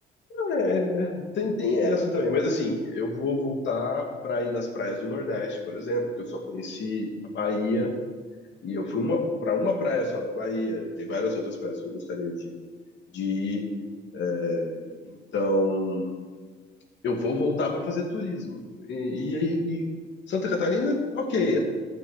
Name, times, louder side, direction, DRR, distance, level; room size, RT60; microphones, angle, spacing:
voice 1, 0.3-7.9 8.6-12.5 13.1-13.7 14.1-16.2 17.0-19.9 20.3-21.6, left 2 dB, 65° left, 2 dB, 2.4 m, -27 dB
13.0 x 6.4 x 8.1 m, 1.5 s
cardioid pair, 90°, 20 cm